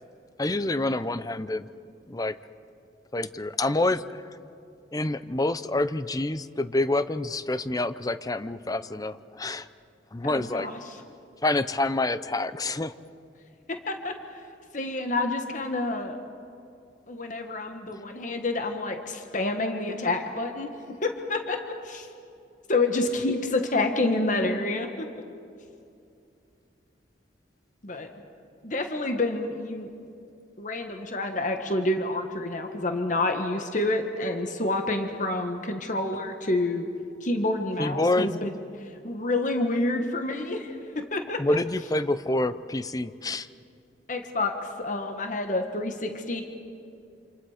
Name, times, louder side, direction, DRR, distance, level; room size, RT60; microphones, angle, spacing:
voice 1, 0.4-1.7 2.1-2.4 3.1-4.0 4.9-9.7 10.1-10.7 11.4-12.9 37.8-38.3 41.4-43.5, left 2 dB, 20° left, 13 dB, 0.6 m, -27 dB
voice 2, 10.2-11.0 13.7-14.4 14.7-16.2 17.1-20.7 21.0-22.1 22.7-25.1 27.8-28.1 28.6-29.9 30.6-36.9 37.2-38.5 38.8-41.4 44.1-46.4, left 2 dB, 45° left, 5 dB, 1.5 m, -28 dB
27.5 x 27.5 x 5.0 m, 2.5 s
head